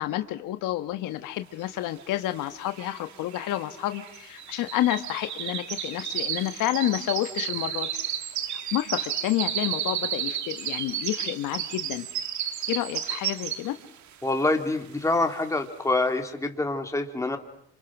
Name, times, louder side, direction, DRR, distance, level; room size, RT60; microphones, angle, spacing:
voice 1, 0.0-8.0 8.5-12.1 12.7-13.8, left 14 dB, 70° left, 9 dB, 1.5 m, -29 dB
sound 1, 2.1-2.2 2.4-13.9 14.3-14.6 15.0-15.1, right 10 dB, 60° right, 2.0 m, -32 dB
voice 2, 14.2-17.4, left 2 dB, 10° left, 4 dB, 2.8 m, -26 dB
27.5 x 27.0 x 6.1 m, 0.71 s
cardioid pair, 110°, 33 cm